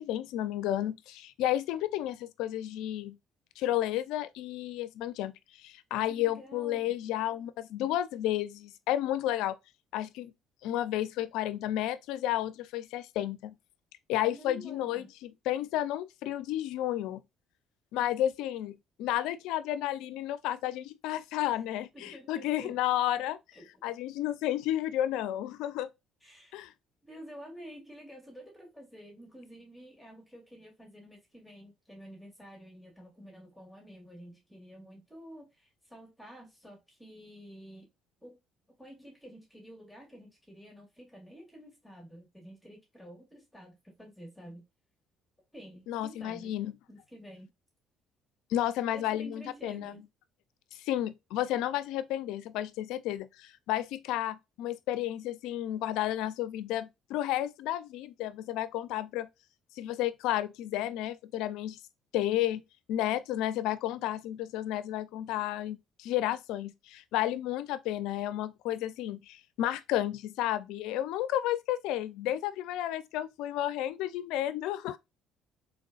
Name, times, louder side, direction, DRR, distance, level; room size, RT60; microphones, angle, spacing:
voice 1, 0.0-3.2 3.6-5.3 5.6-9.6 9.9-10.3 10.6-13.5 14.1-17.2 17.9-23.4 23.8-25.9 26.5-26.7 45.9-46.7 48.5-49.9 50.7-59.3 59.8-61.8 62.1-62.6 62.9-75.0, left 13 dB, 75° left, 0.4 m, -32 dB
voice 2, 6.1-6.9 14.3-15.1 21.5-21.6 21.9-22.8 23.5-23.8 26.2-26.6 27.0-37.9 38.2-38.4 38.8-44.6 45.5-46.5 46.9-47.5 48.9-50.0, equal, 5° left, 2.0 m, -50 dB
3.7 x 3.4 x 2.3 m
supercardioid pair, 65°, 0 cm